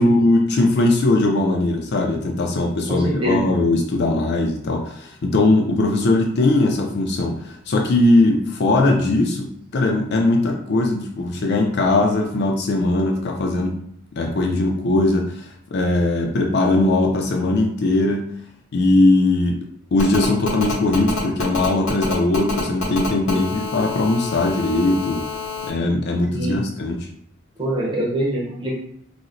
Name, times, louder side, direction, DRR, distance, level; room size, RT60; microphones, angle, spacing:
voice 1, 0.0-13.8 14.2-18.3 18.7-19.6 19.9-25.3 25.6-27.1, left 2 dB, 55° left, 1 dB, 0.4 m, -19 dB
voice 2, 2.9-3.5 26.3-26.6 27.6-28.8, right 1 dB, 25° right, -4 dB, 0.9 m, -24 dB
Telephone, 20.0-25.7, left 4 dB, 75° left, 1.0 m, -28 dB
4.0 x 2.1 x 2.5 m, 0.68 s
head